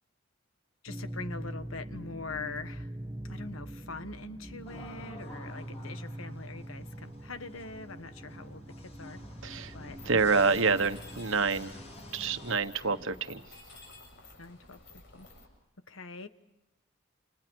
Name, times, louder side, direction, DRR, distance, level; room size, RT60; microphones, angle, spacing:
voice 1, 0.8-2.9 3.2-9.2 9.7-10.6 14.4-15.3 15.9-16.3, left 3 dB, 80° left, 10 dB, 1.4 m, -43 dB
sound 1, 0.9-12.6, right 1 dB, 15° right, 1.2 m, -44 dB
sound 2, 4.6-12.5, left 1 dB, 30° left, 7.7 m, -50 dB
voice 2, 9.4-9.7 10.0-11.7 12.1-13.4, right 4 dB, 70° right, 9 dB, 1.4 m, -27 dB
Mechanisms, 10.0-15.4, left 2 dB, 60° left, 7.6 m, -52 dB
30.0 x 28.5 x 4.7 m, 0.93 s
head